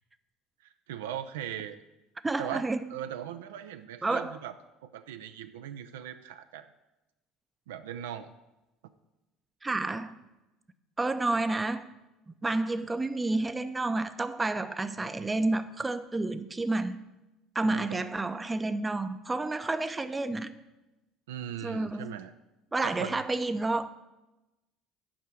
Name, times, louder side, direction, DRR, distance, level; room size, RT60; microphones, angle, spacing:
voice 1, 0.6-1.8 2.4-2.6 2.9-4.5 4.8-6.7 7.7-8.3 17.6-18.0 21.3-22.3 22.8-23.2, right 10 dB, 70° right, 9 dB, 0.4 m, -39 dB
voice 2, 2.2-2.9 4.0-4.4 9.6-10.2 11.0-11.9 12.3-17.0 17.5-20.6 21.6-22.2 22.7-24.0, right 2 dB, 15° right, 12 dB, 0.6 m, -30 dB
8.6 x 5.5 x 7.4 m, 1.0 s
figure-of-eight pair, 60°, 0 cm